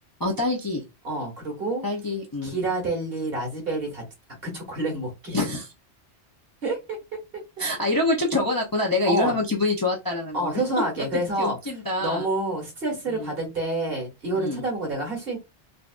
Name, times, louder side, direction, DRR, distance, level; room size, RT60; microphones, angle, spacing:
voice 1, 0.2-0.8 1.8-2.5 5.3-5.7 7.6-10.5 11.0-11.1 11.4-12.3 13.1-13.3 14.4-14.6, left 2 dB, 30° left, -1 dB, 0.4 m, -25 dB
voice 2, 1.0-1.8 2.4-4.0 4.4-5.4 6.6-7.0 9.0-9.4 10.3-11.6 12.0-15.4, right 2 dB, 55° right, 1 dB, 1.7 m, -28 dB
3.9 x 2.4 x 2.4 m, 0.24 s
omnidirectional pair, 1.2 m